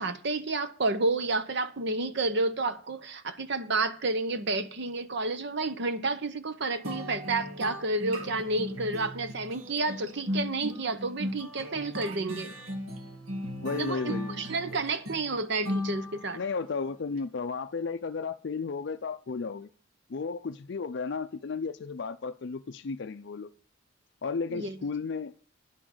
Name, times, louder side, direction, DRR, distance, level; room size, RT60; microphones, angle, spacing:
voice 1, 0.0-12.5 13.7-16.4 24.5-24.8, right 3 dB, 55° right, 0.8 m, -30 dB
sound 1, 6.8-16.5, equal, 80° right, 1.6 m, -37 dB
voice 2, 13.6-14.4 16.3-19.7 20.1-23.5 24.2-25.3, left 4 dB, 55° left, 0.4 m, -34 dB
10.5 x 6.2 x 7.8 m
head